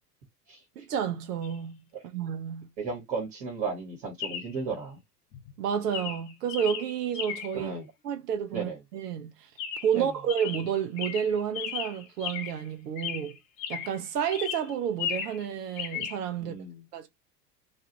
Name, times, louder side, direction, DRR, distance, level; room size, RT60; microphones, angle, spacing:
voice 1, 0.8-1.8 2.1-2.7 5.6-7.7 8.0-9.3 9.8-13.4 13.7-16.5 16.9-17.1, right 8 dB, 75° right, 0.7 m, -30 dB
Chirp tweet, 1.4-1.6 4.2-4.6 5.3-5.6 5.9-7.6 9.6-10.0 10.3-12.7 13.0-14.0 14.3-15.5 15.7-16.2, left 8 dB, 55° left, 0.9 m, -36 dB
voice 2, 2.8-5.0 7.5-7.9 8.5-8.8 9.9-10.1 16.4-16.8, right 4 dB, 50° right, 1.3 m, -34 dB
2.4 x 2.4 x 2.7 m
figure-of-eight pair, 80°, 48 cm